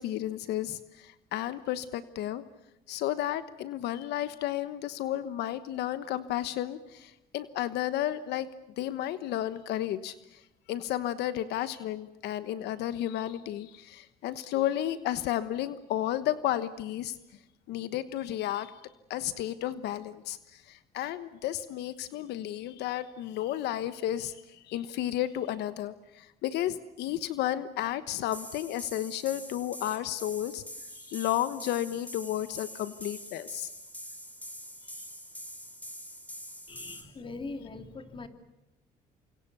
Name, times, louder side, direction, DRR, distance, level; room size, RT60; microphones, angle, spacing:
voice 1, 0.0-2.4 2.9-8.5 8.8-10.4 10.7-17.2 17.7-18.7 19.1-30.6 30.9-33.7, left 12 dB, 80° left, 13 dB, 1.2 m, -32 dB
sound 1, 28.3-37.0, equal, 10° left, 5.4 m, -44 dB
voice 2, 36.7-38.3, left 3 dB, 30° left, 8 dB, 3.0 m, -41 dB
29.5 x 25.0 x 6.9 m, 0.92 s
cardioid pair, 110°, 17 cm